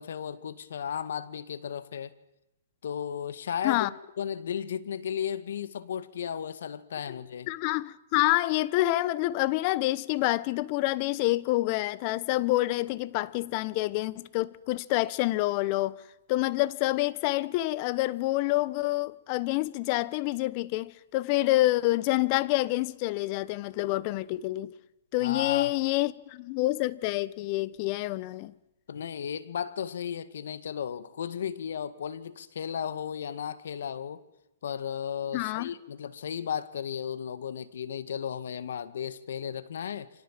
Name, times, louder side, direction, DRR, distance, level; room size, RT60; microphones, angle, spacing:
voice 1, 0.0-2.1 2.8-3.9 4.2-7.5 25.2-25.7 28.9-34.2 34.6-40.1, left 8 dB, 70° left, 1.9 m, -34 dB
voice 2, 7.5-16.0 16.3-24.7 25.1-28.5 35.3-35.7, left 18 dB, 40° left, 1.1 m, -27 dB
29.5 x 25.0 x 7.6 m
hypercardioid pair, 140°, 0 cm